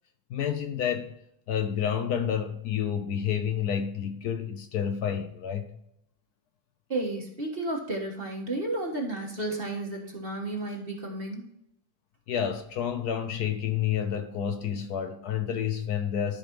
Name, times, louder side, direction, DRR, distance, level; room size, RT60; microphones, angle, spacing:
voice 1, 0.3-1.1 1.5-5.7 12.3-16.4, left 8 dB, 65° left, 1.2 m, -29 dB
voice 2, 6.9-11.5, right 2 dB, 35° right, 1.6 m, -32 dB
14.0 x 5.1 x 3.0 m
omnidirectional pair, 1.9 m